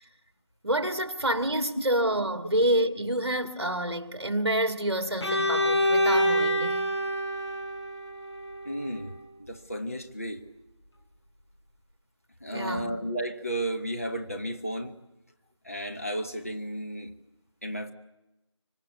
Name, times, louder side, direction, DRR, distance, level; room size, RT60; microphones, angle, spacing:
voice 1, 0.6-6.9 12.5-12.9, right 1 dB, 55° right, 2.1 m, -28 dB
Bowed string instrument, 5.2-9.0, equal, 60° left, 4.9 m, -26 dB
voice 2, 8.6-10.4 12.4-14.9 15.6-17.1 17.6-17.9, right 1 dB, 30° left, 1.3 m, -33 dB
25.0 x 25.0 x 8.2 m
figure-of-eight pair, 175°, 16 cm